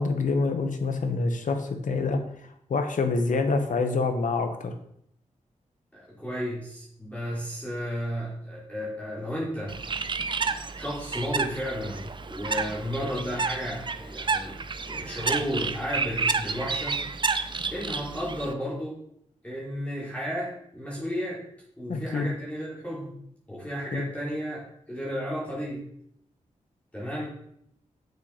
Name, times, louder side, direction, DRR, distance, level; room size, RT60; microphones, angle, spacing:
voice 1, 0.0-2.2 2.7-4.7 21.9-22.3 23.9-24.0, left 3 dB, 75° left, 6 dB, 1.3 m, -26 dB
voice 2, 5.9-9.8 10.8-14.6 14.9-17.0 17.7-19.0 19.4-21.4 21.8-23.1 23.5-25.8 26.9-27.3, equal, 10° left, -7 dB, 3.8 m, -33 dB
Bird, 9.7-18.5, right 4 dB, 35° right, 0.6 m, -30 dB
8.4 x 6.7 x 5.0 m, 0.71 s
wide cardioid pair, 115°, 13 cm